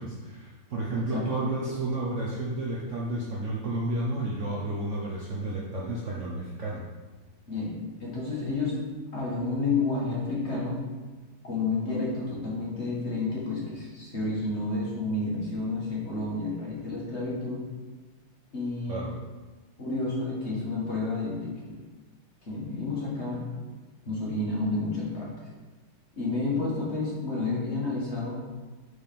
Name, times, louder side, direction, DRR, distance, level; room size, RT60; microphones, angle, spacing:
voice 1, 0.0-6.8 18.9-19.1, right 2 dB, 90° right, -4 dB, 0.6 m, -31 dB
voice 2, 7.5-8.8 9.1-10.8 11.4-17.6 18.5-19.0 19.8-21.7 22.5-23.4 24.1-25.3 26.2-28.4, left 3 dB, 35° left, -5 dB, 1.7 m, -30 dB
4.8 x 4.8 x 5.2 m, 1.3 s
omnidirectional pair, 2.3 m